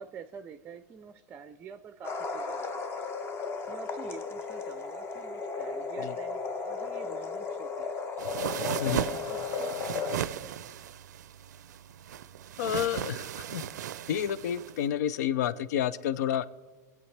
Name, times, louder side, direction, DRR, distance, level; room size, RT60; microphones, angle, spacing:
voice 1, 0.0-2.8 3.6-8.0 8.3-10.5, right 6 dB, 25° right, 10 dB, 0.5 m, -47 dB
sound 1, 2.0-10.2, left 5 dB, 25° left, 0.8 m, -35 dB
sound 2, 8.2-14.8, right 10 dB, 80° right, 0.5 m, -36 dB
voice 2, 12.6-13.6 14.1-16.5, left 10 dB, 70° left, 18 dB, 0.5 m, -30 dB
23.0 x 8.6 x 3.3 m, 1.3 s
hypercardioid pair, 120°, 9 cm